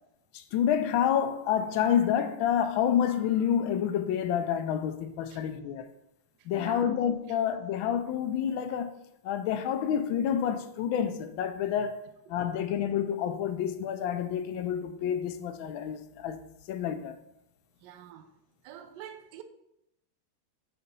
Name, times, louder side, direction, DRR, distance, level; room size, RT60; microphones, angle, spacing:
voice 1, 0.3-5.9 6.5-8.9 9.2-12.0 12.3-16.4 16.7-17.2, left 9 dB, 75° left, 1.4 m, -28 dB
voice 2, 6.5-6.9 12.3-12.4 17.8-18.3 18.6-19.4, right 10 dB, 65° right, 1.2 m, -45 dB
6.8 x 4.3 x 5.3 m
omnidirectional pair, 2.3 m